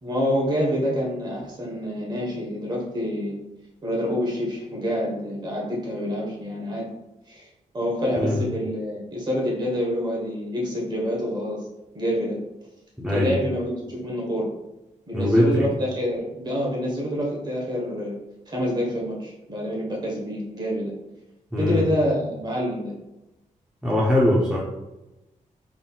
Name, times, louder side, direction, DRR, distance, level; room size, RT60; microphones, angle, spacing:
voice 1, 0.0-3.4 3.8-6.9 7.3-7.5 7.7-11.7 11.9-12.4 13.1-14.5 15.1-18.1 18.5-20.9 21.6-22.9, equal, 35° right, -2 dB, 1.1 m, -27 dB
voice 2, 13.0-13.4 15.1-15.7 21.5-21.8 23.8-24.6, left 1 dB, 5° right, -5 dB, 0.5 m, -21 dB
3.8 x 3.7 x 2.3 m, 0.98 s
wide cardioid pair, 175°, 14 cm